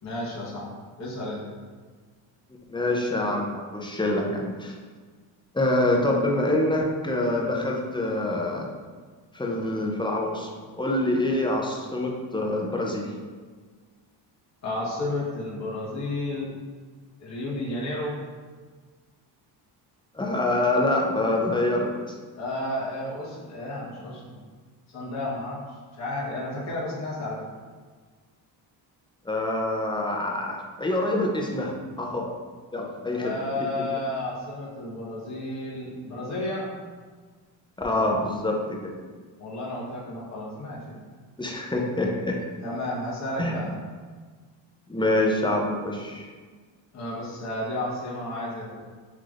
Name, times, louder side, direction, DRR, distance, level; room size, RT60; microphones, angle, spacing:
voice 1, 0.0-1.4 14.6-16.5 17.2-18.2 22.4-24.4 24.9-25.6 26.0-27.5 33.1-36.7 39.4-41.0 42.6-43.8 46.9-48.8, left 1 dB, 35° left, -6 dB, 1.2 m, -32 dB
voice 2, 2.7-4.7 5.5-8.7 9.3-10.5 10.8-13.1 20.1-21.9 29.2-32.3 32.7-33.4 33.8-33.9 37.8-38.9 41.4-42.4 43.4-43.5 44.9-46.3, left 1 dB, 10° left, -1 dB, 0.5 m, -26 dB
5.8 x 3.1 x 2.5 m, 1.5 s
cardioid pair, 110°, 47 cm